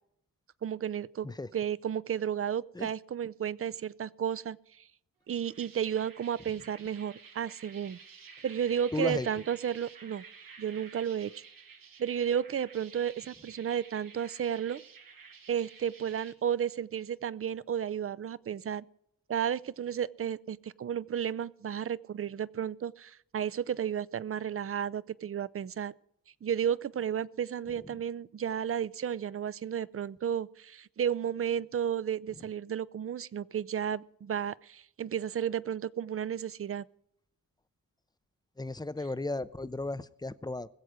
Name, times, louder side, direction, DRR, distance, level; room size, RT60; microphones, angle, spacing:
voice 1, 0.6-1.3 1.5-4.6 5.3-8.0 8.4-10.2 10.6-11.4 12.0-14.8 15.5-18.9 19.3-25.9 26.4-36.8, right 8 dB, 45° right, 21 dB, 0.5 m, -33 dB
sound 1, 5.3-16.3, right 6 dB, 85° right, 1.5 m, -52 dB
voice 2, 8.9-9.3 38.6-40.7, left 2 dB, 15° left, 15 dB, 0.5 m, -34 dB
21.0 x 7.8 x 5.0 m, 0.74 s
wide cardioid pair, 120°, 33 cm